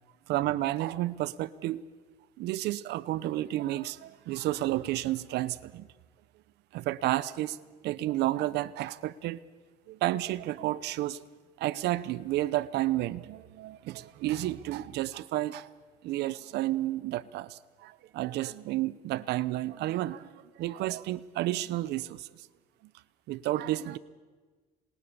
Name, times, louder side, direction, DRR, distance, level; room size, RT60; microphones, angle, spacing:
voice 1, 0.3-1.8 2.4-5.9 6.7-7.6 7.8-9.4 9.9-11.2 11.6-15.7 16.0-20.3 20.6-22.3 23.3-24.0, right 15 dB, 80° right, 0.8 m, -31 dB
27.5 x 22.0 x 6.8 m
cardioid pair, 110°, 17 cm